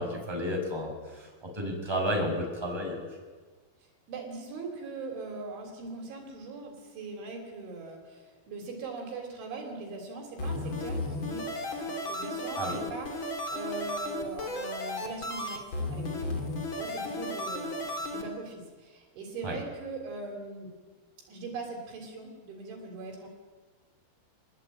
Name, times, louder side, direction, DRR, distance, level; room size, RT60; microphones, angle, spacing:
voice 1, 0.0-3.2 12.6-12.8 19.4-19.5, equal, 5° right, 0 dB, 5.9 m, -32 dB
voice 2, 4.1-15.6 15.9-20.7 21.3-23.3, right 3 dB, 65° right, 2 dB, 5.7 m, -41 dB
sound 1, 10.4-18.2, left 1 dB, 30° left, 3.0 m, -34 dB
27.0 x 21.0 x 8.9 m, 1.4 s
omnidirectional pair, 5.9 m